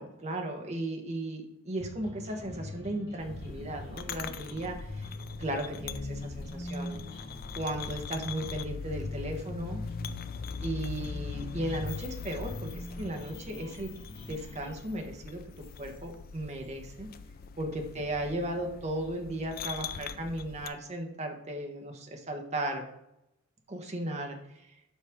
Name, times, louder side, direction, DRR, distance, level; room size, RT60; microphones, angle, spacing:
voice 1, 0.0-5.1 5.4-7.0 7.6-9.8 10.6-13.9 14.3-15.4 15.8-17.1 17.6-22.8 23.7-24.4, right 1 dB, 35° right, 2 dB, 1.0 m, -36 dB
sound 1, 1.8-14.7, left 1 dB, 20° left, 2.7 m, -43 dB
sound 2, 2.2-5.9, equal, 65° right, 2.4 m, -55 dB
sound 3, 3.2-20.7, left 6 dB, 50° left, 0.4 m, -42 dB
7.3 x 4.8 x 3.6 m, 0.83 s
head